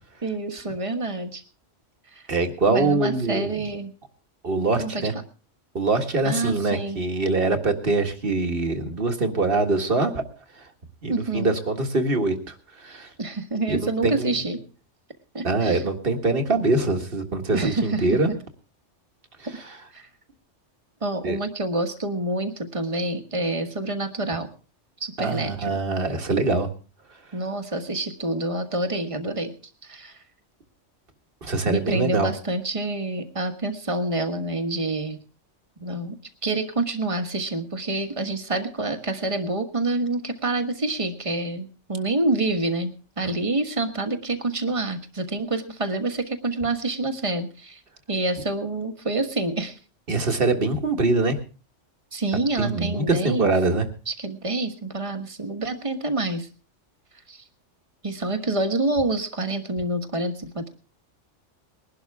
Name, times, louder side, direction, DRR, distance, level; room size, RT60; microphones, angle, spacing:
voice 1, 0.2-1.4 2.1-2.2 2.7-3.9 4.7-5.1 6.2-7.0 11.1-11.6 13.2-14.6 15.3-15.8 17.5-18.2 19.4-19.6 19.9-20.1 21.0-24.5 25.0-25.8 27.3-29.5 29.8-30.2 31.6-35.2 35.8-36.2 36.4-47.8 48.1-49.8 52.1-53.5 54.1-56.5 57.3-57.4 58.0-60.7, right 2 dB, 25° right, 7 dB, 1.4 m, -27 dB
voice 2, 2.3-3.5 4.4-5.1 5.7-10.2 11.0-12.3 12.8-13.1 13.7-14.3 15.4-18.3 21.2-21.4 25.2-26.7 31.4-32.3 50.1-51.3 52.6-53.9, right 3 dB, 50° right, 6 dB, 1.8 m, -23 dB
21.5 x 12.0 x 3.5 m, 0.36 s
omnidirectional pair, 1.2 m